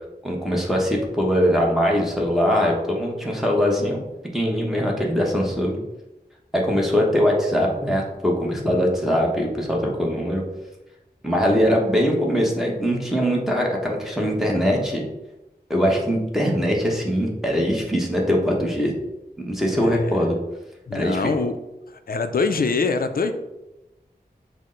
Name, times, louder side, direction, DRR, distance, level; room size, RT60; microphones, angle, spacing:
voice 1, 0.2-4.0 4.3-5.8 6.5-10.4 11.2-15.0 15.7-18.9 19.4-20.4 20.9-21.3, equal, ahead, -2 dB, 0.9 m, -22 dB
voice 2, 19.7-20.2 20.9-21.5 22.1-23.3, left 4 dB, 60° left, 8 dB, 0.4 m, -24 dB
6.2 x 2.1 x 3.8 m, 1.0 s
wide cardioid pair, 60°, 17 cm